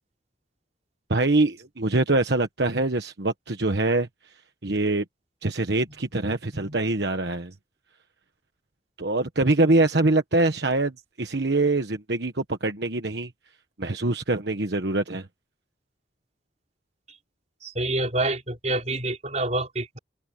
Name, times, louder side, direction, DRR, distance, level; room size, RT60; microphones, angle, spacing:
voice 1, 1.1-5.0 5.4-7.5 9.0-13.3 13.8-15.3, right 2 dB, 65° right, 1.3 m, -24 dB
voice 2, 17.6-20.0, right 2 dB, 40° right, 4.6 m, -27 dB
open air
head